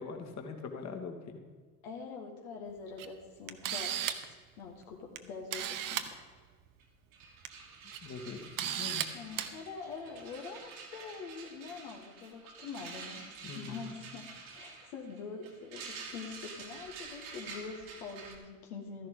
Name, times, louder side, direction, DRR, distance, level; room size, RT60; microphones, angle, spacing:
voice 1, 0.0-1.4 8.0-9.0 13.4-14.0, left 4 dB, 40° left, 4 dB, 1.8 m, -42 dB
voice 2, 1.8-4.0 4.3-6.3 9.1-13.2 13.5-19.1, left 5 dB, 70° left, 1 dB, 1.5 m, -45 dB
Camera, 3.0-3.1 3.5-4.3 5.2-5.3 5.5-6.1 7.2-7.5 7.9-8.0 8.6-9.1 9.4-9.5, right 10 dB, 50° right, 1.0 m, -34 dB
sound 1, 6.8-6.9 7.1-18.3, right 5 dB, 70° right, 2.3 m, -48 dB
13.5 x 11.0 x 3.9 m, 1.5 s
hypercardioid pair, 60°, 44 cm